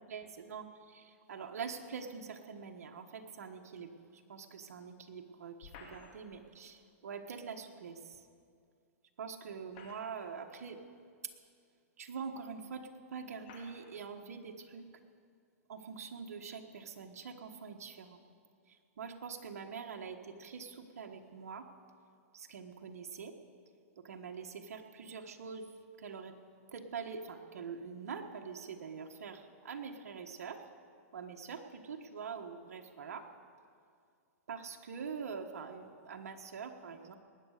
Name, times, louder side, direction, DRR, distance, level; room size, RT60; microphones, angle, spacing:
voice 1, 0.1-8.2 9.2-10.9 12.0-14.9 15.7-18.2 18.7-21.7 22.3-23.4 24.0-25.7 26.0-26.3 26.7-30.6 31.1-33.3 34.5-37.1, right 6 dB, 80° right, 3 dB, 1.4 m, -44 dB
sound 1, 5.6-6.4 8.1-8.2 9.5-10.4 11.3-11.4 12.3-12.4 13.4-13.9, left 5 dB, 50° left, 2.6 m, -54 dB
20.0 x 9.5 x 6.6 m, 2.3 s
hypercardioid pair, 140°, 8 cm